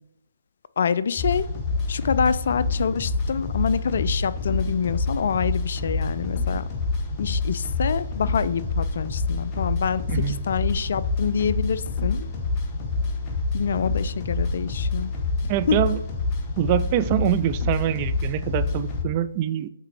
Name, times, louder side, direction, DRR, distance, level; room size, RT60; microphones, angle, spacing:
voice 1, 0.8-1.5 1.9-6.7 7.2-12.3 13.5-15.1 15.7-15.8, left 6 dB, 60° left, 15 dB, 0.3 m, -26 dB
sound 1, 1.2-19.0, left 3 dB, 25° left, 0.9 m, -27 dB
voice 2, 15.5-16.0 16.6-19.7, right 12 dB, 30° right, 13 dB, 0.3 m, -24 dB
8.1 x 3.7 x 3.1 m, 0.78 s
figure-of-eight pair, 140°, 0 cm